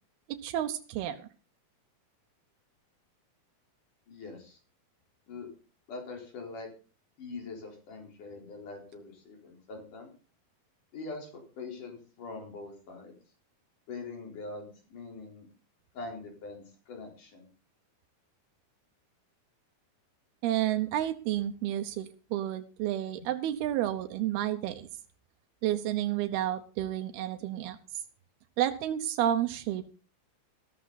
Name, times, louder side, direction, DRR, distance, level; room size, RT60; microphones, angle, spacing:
voice 1, 0.3-1.3 20.4-24.9 25.6-28.0 28.6-29.9, right 12 dB, 85° right, 7 dB, 2.9 m, -31 dB
voice 2, 4.1-4.6 5.3-5.5 5.9-6.7 7.2-10.1 10.9-13.1 13.9-15.5 15.9-17.5, left 3 dB, 55° left, 2 dB, 5.6 m, -43 dB
14.5 x 13.5 x 4.1 m, 0.36 s
omnidirectional pair, 4.4 m